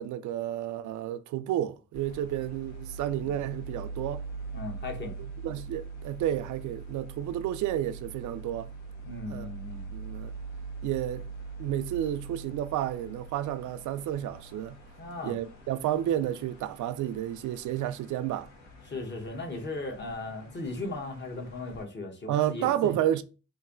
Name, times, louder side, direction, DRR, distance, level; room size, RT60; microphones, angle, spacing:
voice 1, 0.0-4.2 5.4-8.7 9.3-9.5 9.9-10.3 10.8-11.2 11.6-14.8 15.2-18.5 22.3-23.2, right 12 dB, 75° right, 0.5 m, -31 dB
sound 1, 1.9-21.8, right 4 dB, 70° left, 1.3 m, -43 dB
voice 2, 4.5-5.1 9.1-9.9 15.0-15.4 18.9-23.0, left 2 dB, 35° left, 1.1 m, -37 dB
3.2 x 2.6 x 3.7 m
cardioid pair, 90°, 30 cm